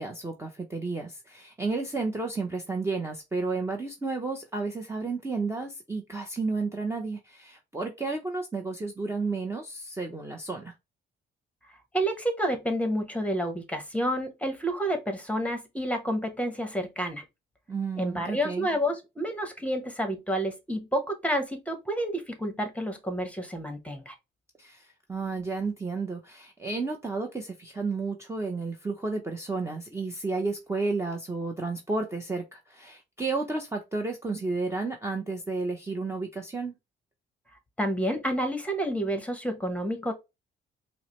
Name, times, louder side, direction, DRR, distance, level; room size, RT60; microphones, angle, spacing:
voice 1, 0.0-10.7 17.7-18.7 24.6-36.8, right 3 dB, 15° right, 0.7 m, -32 dB
voice 2, 11.9-17.2 18.0-24.1 37.8-40.1, equal, 5° left, 1.0 m, -29 dB
4.7 x 2.1 x 3.0 m
cardioid pair, 90°, 20 cm